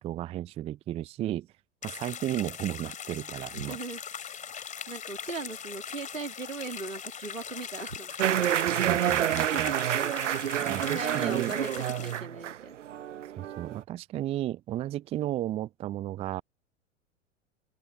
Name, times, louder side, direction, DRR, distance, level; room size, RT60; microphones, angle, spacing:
voice 1, 0.0-1.5 1.8-3.8 8.8-9.7 10.6-11.5 13.4-16.4, right 13 dB, 15° right, 0.5 m, -34 dB
sound 1, 1.8-12.2, left 7 dB, 20° left, 3.1 m, -41 dB
voice 2, 3.5-4.0 4.9-8.5 9.4-10.2 10.9-12.7, right 3 dB, 90° right, 2.1 m, -39 dB
sound 2, 8.2-13.8, right 11 dB, 70° right, 0.8 m, -28 dB
open air
figure-of-eight pair, 95°, 38 cm